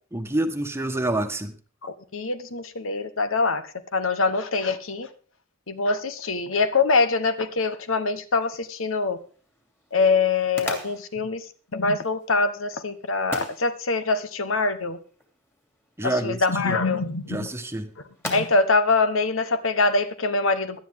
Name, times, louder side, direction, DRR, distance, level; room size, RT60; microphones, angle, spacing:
voice 1, 0.1-1.5 16.0-16.8 17.3-17.9, right 1 dB, 10° right, 6 dB, 1.3 m, -27 dB
voice 2, 1.8-5.1 5.7-9.2 9.9-11.5 11.7-15.0 16.0-17.5 18.2-20.8, left 3 dB, 75° left, 11 dB, 1.1 m, -24 dB
sound 1, 8.4-20.1, left 1 dB, 10° left, 2.9 m, -42 dB
17.5 x 12.0 x 3.7 m, 0.39 s
head